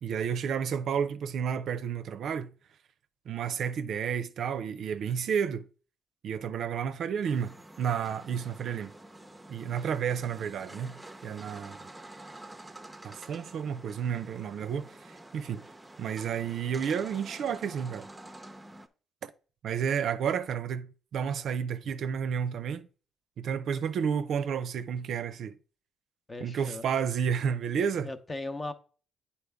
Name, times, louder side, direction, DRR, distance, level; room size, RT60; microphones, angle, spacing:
voice 1, 0.0-2.5 3.3-5.6 6.2-8.9 9.5-10.9 11.2-11.9 13.0-15.6 16.0-18.1 19.2-19.3 19.6-22.9 23.4-25.5 26.4-28.1, right 7 dB, 70° right, 0.5 m, -31 dB
sound 1, 7.2-18.9, right 1 dB, 10° right, 0.6 m, -48 dB
voice 2, 26.3-26.9 28.0-28.7, left 2 dB, 25° left, 0.7 m, -37 dB
8.5 x 4.2 x 3.4 m
cardioid pair, 90°, 0 cm